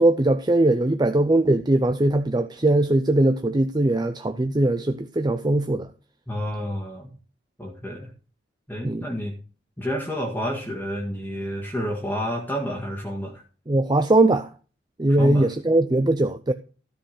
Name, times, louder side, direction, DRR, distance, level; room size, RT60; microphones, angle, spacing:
voice 1, 0.0-5.9 8.8-9.0 13.7-14.5 15.0-16.5, right 1 dB, 20° right, 0.5 m, -20 dB
voice 2, 6.3-7.1 7.6-8.1 8.7-9.3 9.8-13.4 15.1-15.5, equal, 10° left, 1.8 m, -30 dB
13.0 x 5.2 x 6.5 m
head